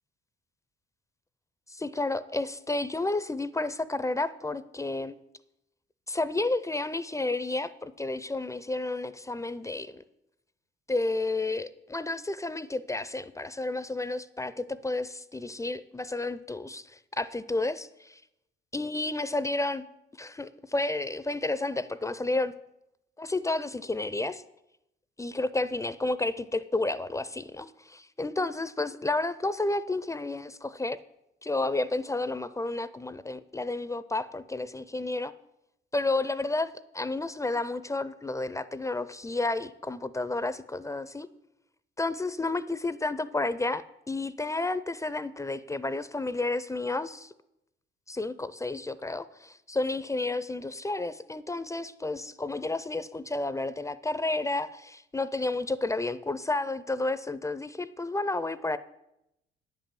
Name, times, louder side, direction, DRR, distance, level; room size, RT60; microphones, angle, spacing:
voice 1, 1.7-5.1 6.1-10.0 10.9-18.2 18.7-19.8 20.2-22.5 23.2-24.4 25.2-31.0 31.4-35.3 35.9-41.3 42.0-47.3 48.1-58.8, left 2 dB, 15° left, 15 dB, 0.4 m, -31 dB
9.9 x 5.4 x 7.4 m, 0.85 s
cardioid pair, 90°, 20 cm